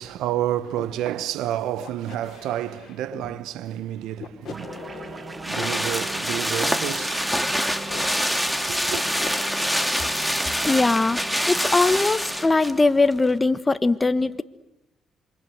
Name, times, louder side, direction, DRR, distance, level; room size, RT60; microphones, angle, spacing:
voice 1, 0.0-8.0 8.7-9.0, right 12 dB, 90° right, 1.1 m, -30 dB
sound 1, 0.8-0.9 1.8-3.3 4.2-5.7 6.5-8.1 8.9-10.2, left 8 dB, 60° left, 3.6 m, -41 dB
sound 2, 4.5-13.4, right 3 dB, 35° right, 1.6 m, -40 dB
sound 3, 4.6-12.8 13.1-13.2, equal, ahead, 2.4 m, -25 dB
voice 2, 10.7-11.2 11.5-14.4, left 3 dB, 20° left, 1.4 m, -20 dB
27.5 x 25.0 x 8.0 m
cardioid pair, 90°, 0 cm